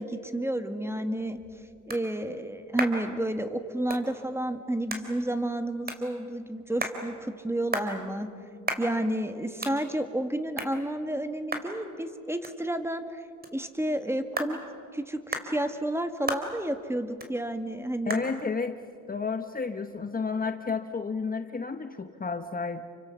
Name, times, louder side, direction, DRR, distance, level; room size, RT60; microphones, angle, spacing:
voice 1, 0.0-1.4 1.9-8.3 8.8-13.2 13.5-14.6 14.9-18.2, right 1 dB, 10° right, 8 dB, 1.8 m, -31 dB
sound 1, 1.0-20.3, right 2 dB, 30° right, 3.5 m, -40 dB
voice 2, 18.1-18.8 19.1-22.8, left 4 dB, 30° left, 8 dB, 1.0 m, -31 dB
29.5 x 25.0 x 7.1 m, 2.4 s
cardioid pair, 90°, 31 cm